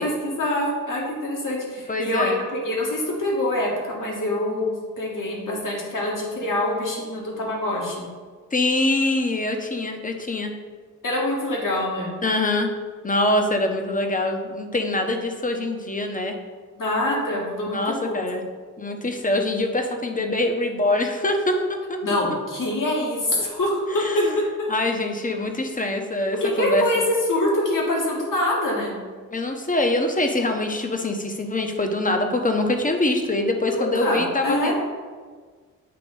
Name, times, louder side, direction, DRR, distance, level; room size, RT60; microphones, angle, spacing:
voice 1, 0.0-8.1 11.0-12.1 16.8-18.2 22.0-23.8 24.6-24.7 26.4-28.9 33.7-34.7, left 1 dB, 70° left, -3 dB, 2.0 m, -25 dB
voice 2, 1.9-2.4 8.5-10.5 12.2-12.7 13.0-16.3 17.7-18.4 18.8-22.0 23.9-24.4 24.7-27.1 29.3-34.7, left 2 dB, 25° left, 4 dB, 1.0 m, -24 dB
7.7 x 3.0 x 5.3 m, 1.5 s
cardioid pair, 50°, 33 cm